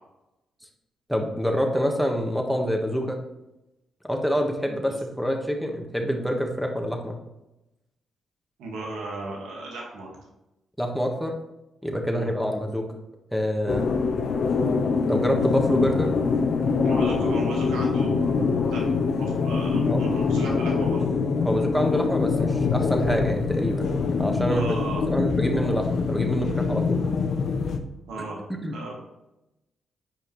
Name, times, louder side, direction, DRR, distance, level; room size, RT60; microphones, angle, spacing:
voice 1, 1.1-3.2 4.0-7.2 10.8-11.3 11.8-12.9 13.3-13.9 15.1-16.1 19.8-20.0 21.4-27.0 28.2-28.3 28.5-28.8, equal, ahead, 2 dB, 1.5 m, -26 dB
voice 2, 8.6-10.1 12.1-12.3 16.8-18.9 19.1-21.0 24.5-25.0 27.0-27.1 28.1-28.4 28.7-28.9, right 2 dB, 90° right, -2 dB, 1.8 m, -35 dB
sound 1, 13.7-27.8, left 4 dB, 65° left, 0.8 m, -24 dB
9.0 x 5.1 x 3.2 m, 0.94 s
cardioid pair, 70°, 0 cm